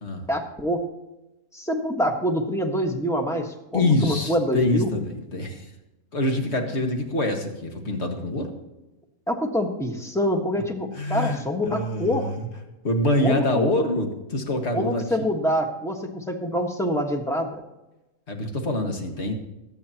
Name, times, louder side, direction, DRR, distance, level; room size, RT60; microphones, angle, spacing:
voice 1, 0.3-0.8 1.5-4.9 9.3-12.3 13.2-13.7 14.7-17.5, equal, ahead, 3 dB, 1.3 m, -26 dB
voice 2, 3.7-5.7 6.1-8.5 10.9-12.5 12.8-15.3 18.3-19.3, left 1 dB, 50° left, 3 dB, 1.9 m, -25 dB
22.5 x 8.8 x 2.9 m, 1.0 s
omnidirectional pair, 1.5 m